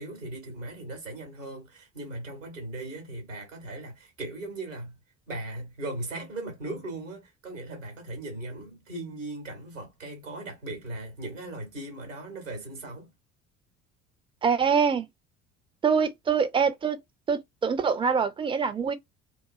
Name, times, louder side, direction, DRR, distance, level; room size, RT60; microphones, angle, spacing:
voice 1, 0.0-5.0 5.3-13.1, right 2 dB, 80° right, 1.4 m, -38 dB
voice 2, 14.4-15.1 15.8-17.0 17.3-18.9, right 6 dB, 15° right, 0.4 m, -24 dB
2.5 x 2.5 x 2.6 m
figure-of-eight pair, 55°, 38 cm